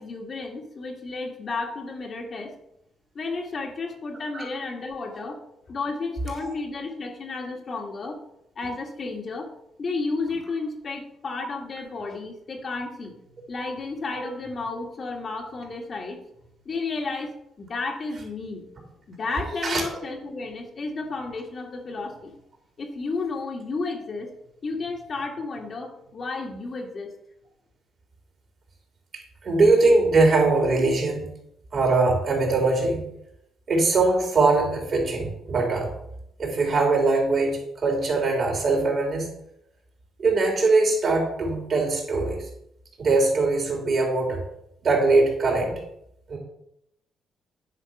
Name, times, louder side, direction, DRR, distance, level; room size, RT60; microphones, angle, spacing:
voice 1, 0.0-2.6 3.2-5.4 5.7-8.2 8.6-9.5 9.8-13.1 13.5-16.2 16.7-17.3 17.6-18.7 19.1-22.3 22.8-24.3 24.6-27.1, left 3 dB, 45° left, 2 dB, 1.6 m, -32 dB
voice 2, 29.4-31.3 31.7-33.0 33.7-35.9 36.4-39.3 40.2-42.5 43.0-44.4 44.8-45.8 46.3-46.4, right 3 dB, 50° right, 0 dB, 3.4 m, -21 dB
9.8 x 4.2 x 5.8 m, 0.80 s
cardioid pair, 90°, 0 cm